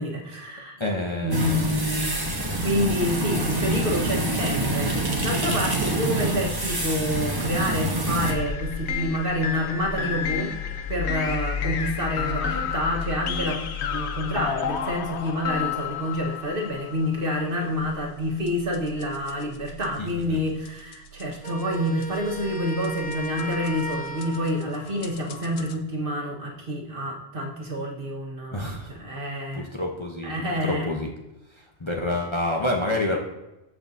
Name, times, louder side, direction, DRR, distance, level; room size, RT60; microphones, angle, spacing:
voice 1, 0.0-0.8 1.2-2.1 2.6-10.5 10.9-13.7 13.9-29.7 30.2-30.9, equal, 50° right, -1 dB, 1.6 m, -28 dB
voice 2, 0.8-2.3 20.0-20.4 28.5-28.9 29.5-30.4 30.6-31.1 31.5-33.2, left 1 dB, 25° left, -1 dB, 0.9 m, -29 dB
sound 1, 1.3-8.3, right 2 dB, 20° right, 1.1 m, -26 dB
sound 2, 8.2-25.7, left 6 dB, 70° left, 1.0 m, -33 dB
Wind instrument woodwind instrument, 21.4-24.8, right 2 dB, 10° left, 0.5 m, -35 dB
14.5 x 5.9 x 2.7 m, 0.97 s
omnidirectional pair, 1.2 m